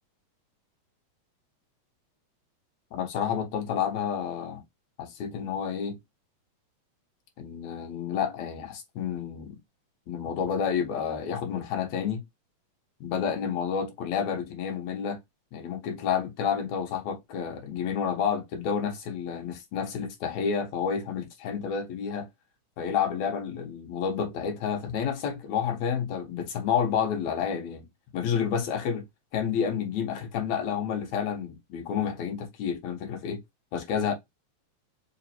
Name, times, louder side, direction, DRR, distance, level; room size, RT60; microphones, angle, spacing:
voice 1, 2.9-4.6 5.0-6.0 7.4-9.6 10.1-12.2 13.0-15.2 15.5-22.3 22.8-27.9 28.1-29.0 29.3-33.4 33.7-34.1, left 7 dB, 75° left, 2.1 m, -30 dB
5.0 x 2.5 x 2.8 m
omnidirectional pair, 3.3 m